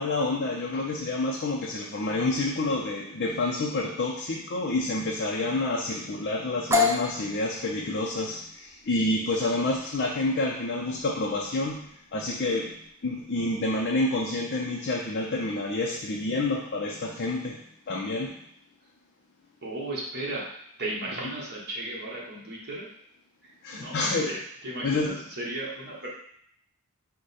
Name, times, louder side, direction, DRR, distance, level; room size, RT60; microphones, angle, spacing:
voice 1, 0.0-18.4 23.6-24.3 24.8-25.2, left 2 dB, 45° left, -1 dB, 0.4 m, -28 dB
sound 1, 6.7-14.3, left 4 dB, 10° right, 0.4 m, -32 dB
voice 2, 19.6-20.5 20.8-22.9 23.4-26.1, right 1 dB, 45° right, -4 dB, 1.2 m, -35 dB
4.8 x 2.2 x 4.1 m, 0.68 s
head